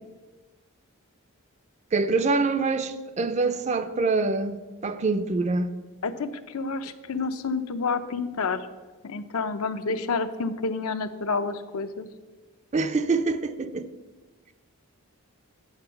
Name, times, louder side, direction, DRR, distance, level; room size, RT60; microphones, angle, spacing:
voice 1, 1.9-5.7 12.7-13.9, right 3 dB, 30° right, 0.4 m, -25 dB
voice 2, 6.0-8.7 9.0-12.1, left 4 dB, 75° left, 0.6 m, -29 dB
8.9 x 6.1 x 5.8 m
head